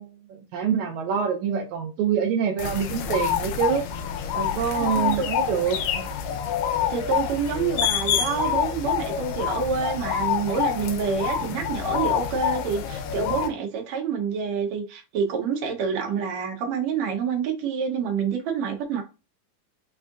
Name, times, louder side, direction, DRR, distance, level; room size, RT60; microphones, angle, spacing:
voice 1, 0.0-3.9 4.3-6.1 11.4-11.7, right 7 dB, 90° right, 1.6 m, -26 dB
sound 1, 2.6-13.5, left 9 dB, 80° left, 2.2 m, -27 dB
voice 2, 4.8-5.3 6.9-19.0, right 6 dB, 70° right, 1.7 m, -27 dB
5.4 x 2.5 x 3.6 m
omnidirectional pair, 4.1 m